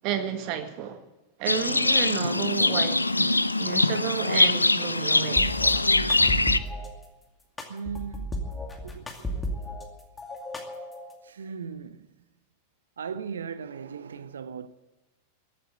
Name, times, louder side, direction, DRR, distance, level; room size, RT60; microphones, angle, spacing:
voice 1, 0.0-1.0 1.4-5.5, right 9 dB, 45° right, 1.6 m, -32 dB
Livestock farm animals working animals, 1.5-6.6, left 2 dB, 85° left, 0.5 m, -23 dB
sound 1, 5.4-6.9 7.6-9.9 10.2-11.1, equal, 10° left, 2.3 m, -34 dB
voice 2, 7.7-8.5 8.8-9.3 11.2-12.1 13.0-14.7, right 6 dB, 65° right, 0.8 m, -38 dB
15.0 x 8.8 x 9.1 m
figure-of-eight pair, 90°, 0 cm